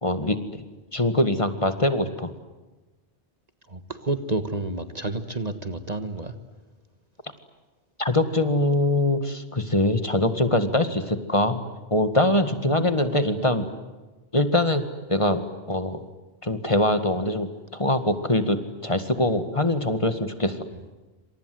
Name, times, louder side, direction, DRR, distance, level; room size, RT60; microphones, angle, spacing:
voice 1, 0.0-0.6 0.9-2.3 8.0-11.6 11.9-13.7 14.3-14.8 15.1-16.0 16.4-20.6, left 1 dB, 30° left, 9 dB, 2.0 m, -23 dB
voice 2, 3.7-6.3, right 2 dB, 35° right, 10 dB, 1.7 m, -30 dB
28.0 x 26.5 x 7.9 m, 1.2 s
omnidirectional pair, 1.1 m